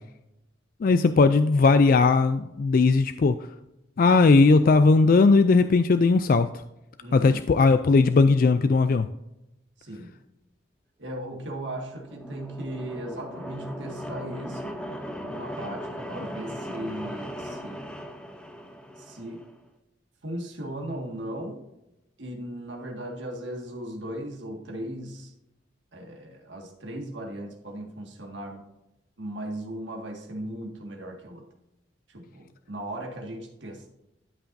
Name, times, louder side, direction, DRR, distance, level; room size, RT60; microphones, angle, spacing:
voice 1, 0.8-3.4 4.0-6.5 7.1-9.1, left 4 dB, 45° left, 10 dB, 0.3 m, -18 dB
voice 2, 7.0-7.4 9.8-10.1 11.0-14.8 15.3-17.9 19.0-19.4 20.2-21.6 22.2-25.3 25.9-28.7 29.2-31.5 32.1-33.9, right 1 dB, 70° right, 2 dB, 1.8 m, -37 dB
sound 1, 11.7-19.5, equal, 5° left, 0.7 m, -38 dB
12.5 x 5.7 x 2.6 m, 0.90 s
head